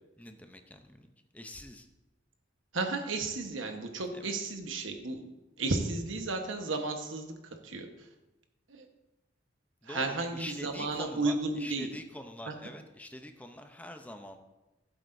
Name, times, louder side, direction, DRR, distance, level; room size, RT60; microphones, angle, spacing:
voice 1, 0.2-1.1 1.3-1.9 4.1-4.3 9.8-14.4, left 1 dB, 10° left, 6 dB, 0.6 m, -45 dB
voice 2, 2.7-5.3 5.6-7.3 7.6-7.9 8.7-8.9 9.9-11.9 12.5-12.6, right 3 dB, 85° right, 5 dB, 1.2 m, -33 dB
15.5 x 7.9 x 2.6 m, 1.0 s
head